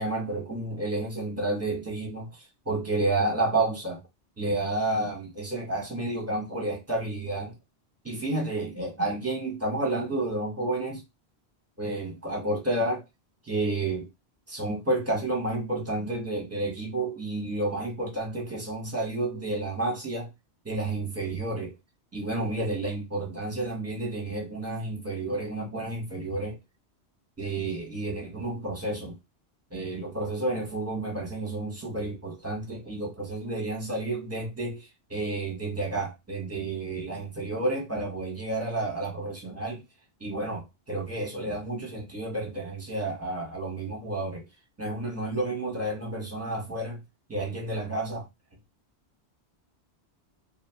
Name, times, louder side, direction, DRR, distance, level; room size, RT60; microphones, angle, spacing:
voice 1, 0.0-4.0 4.4-7.5 8.0-11.0 11.8-13.0 13.4-14.1 14.5-20.3 20.6-21.7 22.1-26.6 27.4-29.1 29.7-39.8 40.2-44.4 44.8-47.0 47.3-48.3, right 2 dB, 15° right, 1.0 m, -30 dB
2.7 x 2.3 x 3.3 m
omnidirectional pair, 1.1 m